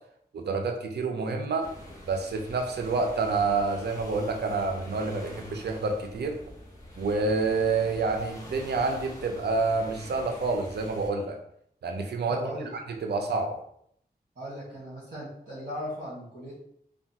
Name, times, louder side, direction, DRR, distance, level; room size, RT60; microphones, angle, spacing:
voice 1, 0.3-1.7 2.1-6.4 7.0-11.4 11.8-12.4 13.0-13.6, right 3 dB, 85° right, 3 dB, 0.5 m, -28 dB
sound 1, 1.6-11.1, left 1 dB, 20° left, 1.3 m, -45 dB
voice 2, 12.3-12.7 14.3-16.6, equal, 55° right, -8 dB, 1.5 m, -37 dB
3.3 x 2.3 x 2.7 m, 0.68 s
wide cardioid pair, 70°, 17 cm